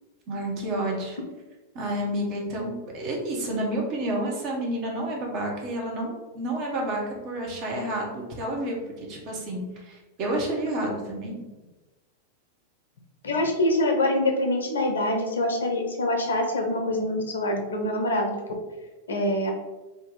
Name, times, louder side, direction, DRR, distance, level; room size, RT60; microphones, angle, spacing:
voice 1, 0.3-1.2 1.7-8.8 9.1-11.4, right 1 dB, 40° right, -1 dB, 0.9 m, -30 dB
voice 2, 13.2-18.3 19.1-19.5, left 1 dB, 70° left, 3 dB, 0.6 m, -25 dB
2.8 x 2.6 x 3.7 m, 1.2 s
figure-of-eight pair, 90°, 0 cm